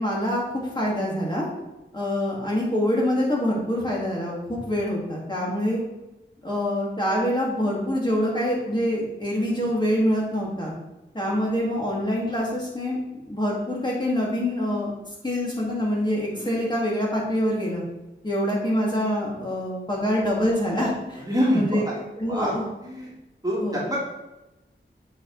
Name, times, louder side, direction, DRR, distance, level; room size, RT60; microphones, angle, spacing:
voice 1, 0.0-1.5 1.9-5.8 6.4-10.7 11.1-13.0 13.2-14.9 15.2-17.8 18.2-21.2 21.5-21.8 22.2-22.6 23.6-23.8, equal, 20° left, -4 dB, 2.1 m, -25 dB
voice 2, 16.3-16.7 21.2-22.0 22.3-22.5 22.8-23.1 23.4-24.1, equal, 20° right, -4 dB, 2.0 m, -27 dB
7.9 x 4.9 x 4.0 m, 1.0 s
wide cardioid pair, 65°, 20 cm